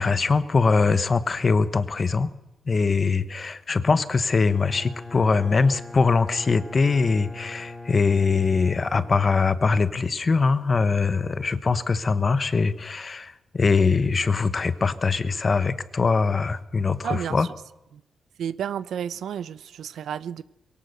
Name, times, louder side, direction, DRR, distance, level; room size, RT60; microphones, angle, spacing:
voice 1, 0.0-2.3 2.7-17.5, left 4 dB, 30° left, 1.0 m, -22 dB
Bowed string instrument, 4.5-9.9, left 2 dB, 15° left, 2.4 m, -41 dB
voice 2, 17.0-17.5 17.9-18.0 18.4-20.4, right 9 dB, 80° right, 0.7 m, -31 dB
22.5 x 17.5 x 6.7 m
wide cardioid pair, 145°, 0 cm